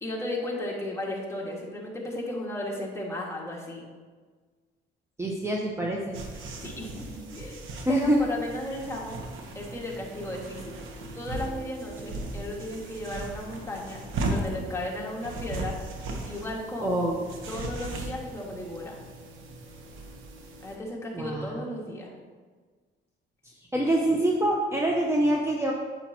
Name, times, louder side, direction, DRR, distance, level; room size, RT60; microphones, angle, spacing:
voice 1, 0.0-3.8 6.6-7.6 7.9-9.2 9.5-10.9 11.1-15.8 16.3-17.0 17.5-19.0 20.6-22.1, left 1 dB, 15° left, -3 dB, 1.9 m, -35 dB
voice 2, 5.2-6.2 7.9-8.2 16.8-17.3 21.1-21.6 23.7-25.7, right 1 dB, 15° right, -1 dB, 0.8 m, -25 dB
sound 1, 6.1-20.8, right 2 dB, 85° right, 1.1 m, -37 dB
8.9 x 7.1 x 2.9 m, 1.5 s
cardioid pair, 90°, 20 cm